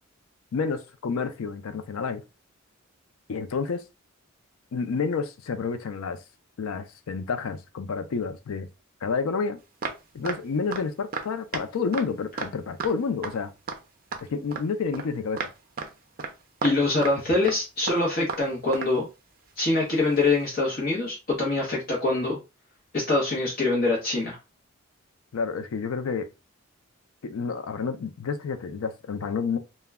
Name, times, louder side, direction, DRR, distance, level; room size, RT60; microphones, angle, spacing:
voice 1, 0.5-2.2 3.3-3.8 4.7-6.2 6.6-8.7 9.0-9.6 10.1-13.5 14.3-15.5 25.3-26.3 27.2-29.6, left 5 dB, 80° left, 0.4 m, -29 dB
sound 1, 9.8-10.4 10.7-10.8 11.1-11.3 11.5-11.6 11.9-12.1 12.4-12.5 12.8-12.9 13.2-13.3 13.7-13.8 14.1-14.6 14.9-15.1 15.4-15.5 15.8-15.9 16.2-16.3 16.6-17.2 17.4-17.6 17.9-18.5 18.7-19.0 20.2-20.3, right 4 dB, 40° right, 0.4 m, -32 dB
voice 2, 16.6-19.1 19.6-22.4 22.9-24.4, left 2 dB, 45° left, 0.8 m, -24 dB
2.1 x 2.1 x 3.4 m
head